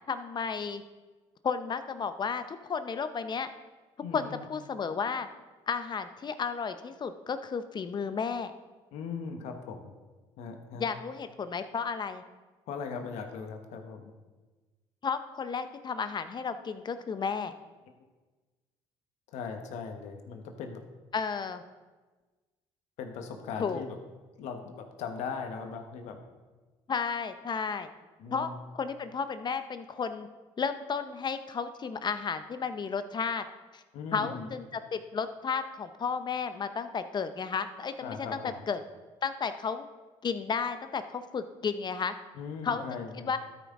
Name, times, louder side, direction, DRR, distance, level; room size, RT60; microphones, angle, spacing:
voice 1, 0.1-0.8 1.4-3.5 4.1-5.3 5.7-8.5 10.8-12.2 15.0-17.5 21.1-21.6 23.6-23.8 26.9-27.9 28.3-30.3 30.6-33.4 33.7-33.8 34.1-38.8 39.2-39.9 40.2-42.1 42.6-43.4, left 5 dB, 40° left, 11 dB, 0.7 m, -33 dB
voice 2, 4.0-4.5 8.9-9.9 10.4-10.9 12.7-14.1 19.3-20.8 23.0-24.0 24.4-26.2 28.2-28.6 33.9-34.5 38.0-38.6 42.3-43.3, left 5 dB, 75° left, 5 dB, 1.2 m, -39 dB
12.5 x 5.9 x 3.7 m, 1.3 s
supercardioid pair, 70°, 12 cm